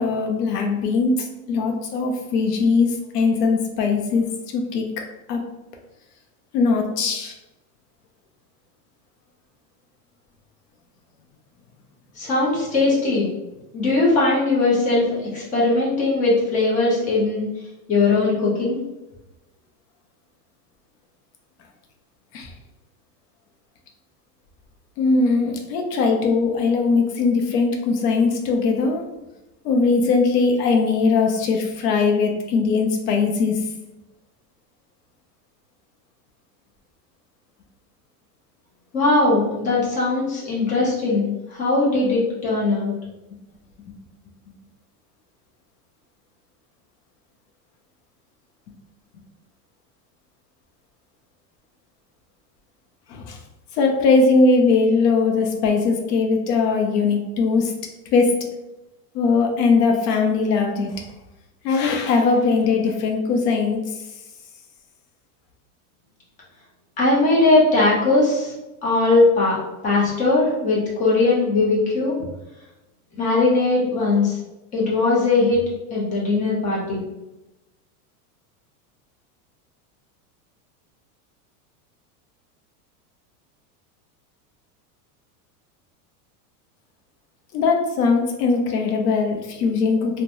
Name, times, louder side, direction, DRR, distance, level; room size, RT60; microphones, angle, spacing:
voice 1, 0.0-4.9 5.3-5.4 6.5-7.3 22.3-22.5 25.0-29.0 29.6-33.6 53.1-53.4 53.7-57.7 58.1-58.4 59.1-61.0 61.6-63.8 87.5-90.2, left 4 dB, 85° left, 2 dB, 0.8 m, -20 dB
voice 2, 12.2-13.3 13.7-15.1 15.3-17.5 17.9-18.8 38.9-42.9 67.0-68.5 68.8-72.2 73.2-74.4 74.7-75.6 75.9-77.0, left 3 dB, 15° left, -6 dB, 0.7 m, -19 dB
3.0 x 2.2 x 2.6 m, 0.99 s
supercardioid pair, 155°, 46 cm